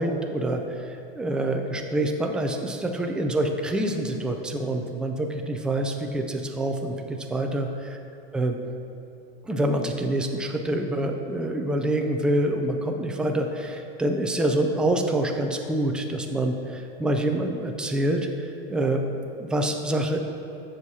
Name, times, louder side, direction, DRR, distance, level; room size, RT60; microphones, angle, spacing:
voice 1, 0.0-7.7 8.3-8.6 9.4-19.0 19.4-20.2, right 1 dB, 5° right, 3 dB, 0.3 m, -26 dB
14.5 x 6.4 x 2.7 m, 2.7 s
supercardioid pair, 135°, 31 cm